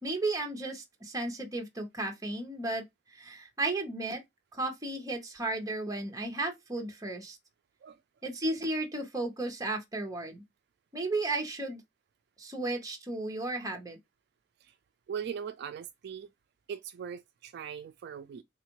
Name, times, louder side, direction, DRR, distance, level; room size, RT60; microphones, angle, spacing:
voice 1, 0.0-2.8 3.1-4.2 4.5-7.4 8.2-10.4 10.9-11.8 12.4-14.0, right 2 dB, 20° right, 0.9 m, -34 dB
voice 2, 15.1-16.3 16.7-18.4, right 7 dB, 60° right, 0.3 m, -40 dB
3.5 x 2.4 x 2.9 m
head